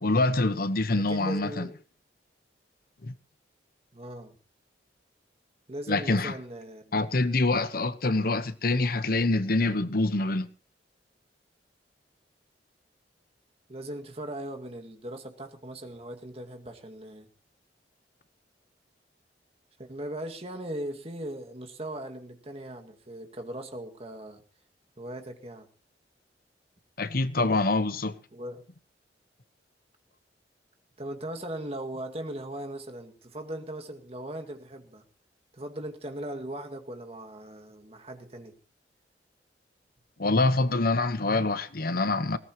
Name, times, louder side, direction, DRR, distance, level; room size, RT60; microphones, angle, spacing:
voice 1, 0.0-1.7 3.0-3.1 5.9-6.3 6.9-10.5 27.0-28.1 40.2-42.4, left 2 dB, 55° left, 1.0 m, -25 dB
voice 2, 0.9-1.7 3.9-4.3 5.7-7.0 8.0-8.1 13.7-17.3 19.8-24.4 25.0-25.7 28.3-28.6 31.0-35.0 35.5-38.5, right 1 dB, 35° right, 2.1 m, -39 dB
19.5 x 18.0 x 3.0 m
head